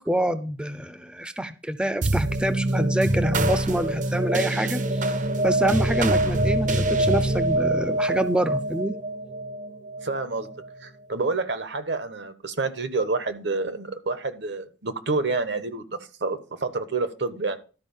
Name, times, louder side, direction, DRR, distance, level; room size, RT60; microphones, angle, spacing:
voice 1, 0.0-5.2 5.4-8.9, right 1 dB, 5° right, 10 dB, 0.5 m, -26 dB
sound 1, 2.0-10.7, right 1 dB, 45° right, 0.7 m, -25 dB
voice 2, 10.0-10.5 10.8-15.8 16.2-17.6, right 3 dB, 65° right, 10 dB, 1.1 m, -28 dB
12.5 x 4.8 x 5.4 m, 0.36 s
head